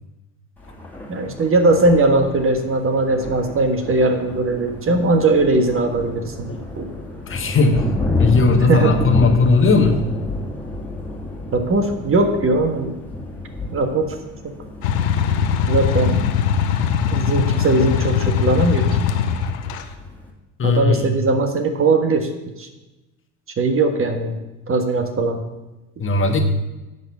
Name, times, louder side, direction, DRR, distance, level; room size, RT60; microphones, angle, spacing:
Thunder, 0.6-20.3, left 1 dB, 5° left, 2.3 m, -30 dB
voice 1, 1.1-6.5 6.8-6.9 8.7-9.0 11.5-12.9 13.7-14.2 14.4-14.5 15.7-16.3 17.1-18.9 20.6-22.3 22.6-22.7 23.6-24.4 24.7-25.4, right 2 dB, 35° right, 6 dB, 1.4 m, -19 dB
voice 2, 7.3-7.8 8.2-10.0 20.6-21.1 26.0-26.4, left 4 dB, 30° left, 5 dB, 1.4 m, -17 dB
sound 1, 14.8-19.8, left 7 dB, 80° left, 0.9 m, -20 dB
10.5 x 4.1 x 7.2 m, 1.0 s
hypercardioid pair, 75°, 39 cm